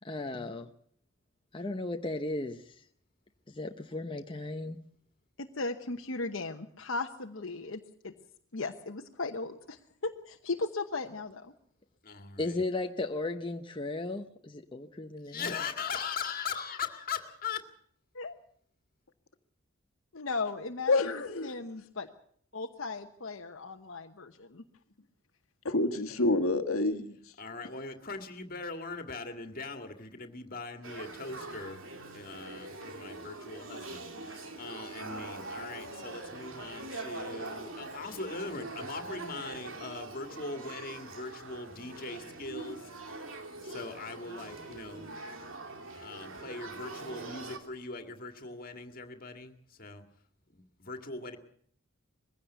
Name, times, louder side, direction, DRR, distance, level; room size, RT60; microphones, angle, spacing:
voice 1, 0.0-0.7 1.5-2.8 3.5-4.8 12.4-15.5, left 2 dB, 25° left, 0.8 m, -35 dB
voice 2, 5.4-8.1 8.5-11.5 18.2-18.3 20.1-22.1 22.5-24.6, left 3 dB, 65° left, 1.1 m, -37 dB
voice 3, 12.0-12.6 15.2-17.6 27.4-31.8 32.1-42.9 43.6-45.1 46.0-50.0 50.5-51.4, left 4 dB, 40° left, 2.0 m, -40 dB
voice 4, 20.9-21.5 25.6-27.2, left 2 dB, 80° left, 1.5 m, -27 dB
Male speech man speaking / Child speech kid speaking / Conversation, 30.8-47.6, right 2 dB, 65° right, 2.7 m, -43 dB
21.5 x 16.0 x 8.1 m
head